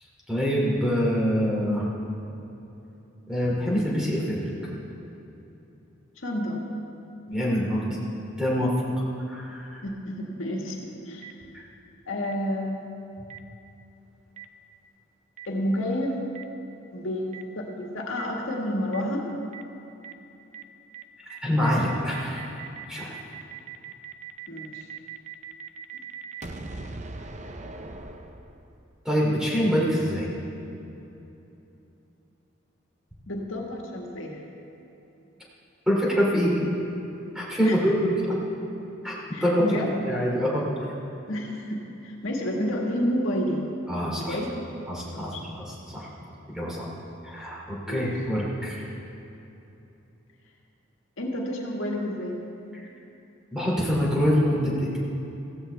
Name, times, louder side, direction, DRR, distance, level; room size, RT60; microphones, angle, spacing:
voice 1, 0.3-1.8 3.3-4.5 7.3-8.0 8.4-8.7 9.3-9.8 21.4-22.6 22.9-23.2 29.0-30.3 35.9-36.7 37.3-38.4 39.0-39.6 40.0-40.7 43.9-44.4 44.9-46.1 46.5-46.9 47.2-48.8 53.5-55.0, equal, 5° right, -5 dB, 2.7 m, -25 dB
voice 2, 6.2-6.6 9.8-11.3 12.1-13.0 15.5-16.2 16.9-19.3 24.5-24.9 33.3-34.4 37.6-37.8 39.3-39.9 41.3-43.7 44.2-44.5 45.1-45.4 47.9-48.1 51.2-52.4, equal, 85° left, 0 dB, 1.8 m, -30 dB
Boom, 11.2-11.3 12.2-12.3 13.3-13.4 14.4-14.5 15.4-15.5 16.3-16.4 17.3-17.4 18.2-18.3 18.9-19.0 19.5-19.6 20.0-20.1 20.5-20.6 20.9-21.0 21.3-28.9, right 5 dB, 35° right, 0.6 m, -40 dB
15.5 x 15.0 x 3.4 m, 3.0 s
head